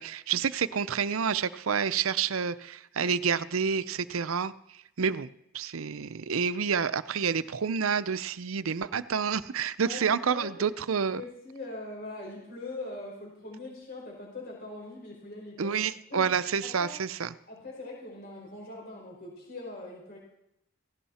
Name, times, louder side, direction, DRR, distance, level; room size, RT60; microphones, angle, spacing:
voice 1, 0.0-4.5 5.0-5.3 5.5-11.2 15.6-17.3, right 6 dB, 85° right, 15 dB, 0.6 m, -29 dB
voice 2, 9.8-10.8 11.1-15.8 16.1-16.3 16.6-17.0 17.5-20.2, left 2 dB, 45° left, -2 dB, 5.5 m, -42 dB
17.0 x 16.5 x 4.3 m, 0.78 s
head